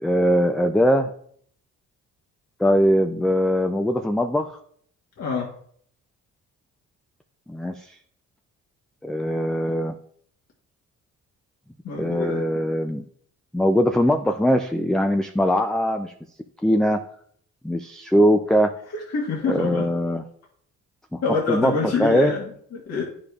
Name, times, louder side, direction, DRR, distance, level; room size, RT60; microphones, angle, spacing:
voice 1, 0.0-1.1 2.6-4.5 7.5-8.0 9.0-10.0 12.0-13.0 13.5-16.1 16.6-17.0 17.6-18.7 19.5-20.2 21.1-21.2 21.5-21.7 22.0-22.3, equal, ahead, 5 dB, 0.3 m, -21 dB
voice 2, 5.2-5.5 11.8-12.5 18.9-19.9 21.2-23.0, left 4 dB, 60° left, -3 dB, 1.4 m, -26 dB
9.7 x 5.1 x 2.4 m, 0.62 s
cardioid pair, 90°, 30 cm